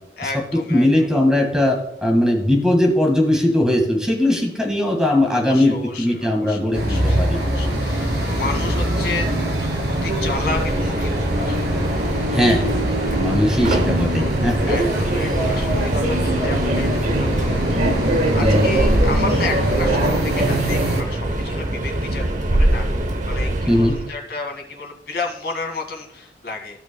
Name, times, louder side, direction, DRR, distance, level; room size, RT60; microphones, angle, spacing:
voice 1, 0.2-1.1 5.3-9.3 9.6-11.6 14.6-17.7 18.3-26.8, left 3 dB, 65° left, 1 dB, 2.1 m, -32 dB
voice 2, 0.7-7.4 12.3-12.6 13.2-14.7 18.4-18.7 23.7-24.0, left 1 dB, 5° right, 1 dB, 1.7 m, -19 dB
sound 1, 6.7-21.0, right 1 dB, 70° right, 2.3 m, -23 dB
Subway metro underground, 9.7-24.1, right 1 dB, 45° right, 0.8 m, -23 dB
15.0 x 6.1 x 2.2 m, 0.91 s
head